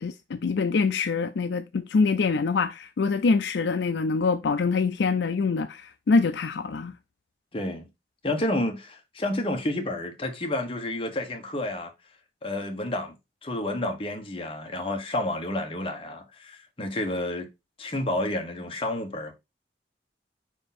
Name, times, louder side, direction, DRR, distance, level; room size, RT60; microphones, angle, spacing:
voice 1, 0.0-6.9, left 4 dB, 75° left, 0.4 m, -25 dB
voice 2, 7.5-7.8 8.2-11.9 12.4-13.2 13.4-17.5 17.8-19.3, left 1 dB, 30° left, 1.3 m, -30 dB
5.2 x 5.0 x 4.2 m
head